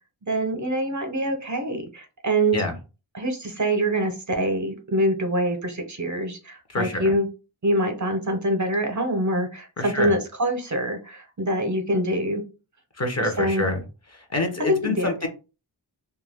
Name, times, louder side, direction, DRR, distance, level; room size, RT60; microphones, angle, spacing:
voice 1, 0.2-2.6 3.1-7.3 7.6-12.4 13.2-13.6 14.7-15.3, right 1 dB, 40° right, 5 dB, 0.7 m, -25 dB
voice 2, 6.7-7.1 9.8-10.1 13.0-13.8 14.1-15.3, left 2 dB, 35° left, 5 dB, 0.8 m, -26 dB
2.3 x 2.2 x 3.4 m, 0.31 s
cardioid pair, 45°, 45 cm